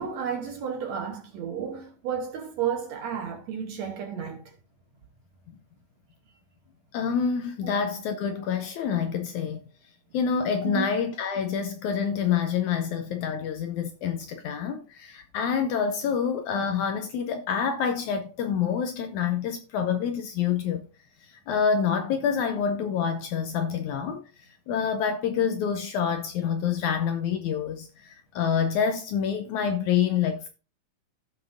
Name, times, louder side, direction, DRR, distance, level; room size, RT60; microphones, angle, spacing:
voice 1, 0.0-4.4 7.6-7.8 10.6-10.9, right 7 dB, 65° right, 2.0 m, -32 dB
voice 2, 6.9-9.6 10.1-20.9 21.5-24.2 24.7-30.5, left 7 dB, 75° left, 1.9 m, -27 dB
15.0 x 5.6 x 2.6 m
omnidirectional pair, 4.0 m